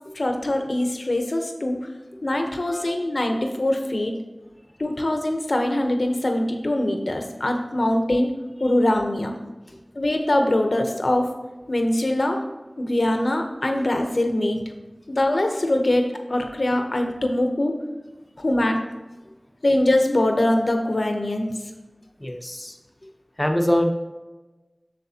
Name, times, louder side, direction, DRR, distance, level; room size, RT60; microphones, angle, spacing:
voice 1, 0.1-1.9 2.2-4.1 4.8-8.3 8.6-9.4 9.9-11.3 11.7-12.4 12.8-14.6 15.1-17.8 18.4-18.8 19.6-21.5, left 1 dB, 80° left, 4 dB, 0.8 m, -23 dB
voice 2, 22.2-22.8 23.4-23.9, equal, 30° left, 4 dB, 0.8 m, -24 dB
7.7 x 6.5 x 2.9 m, 1.2 s
wide cardioid pair, 50°, 0 cm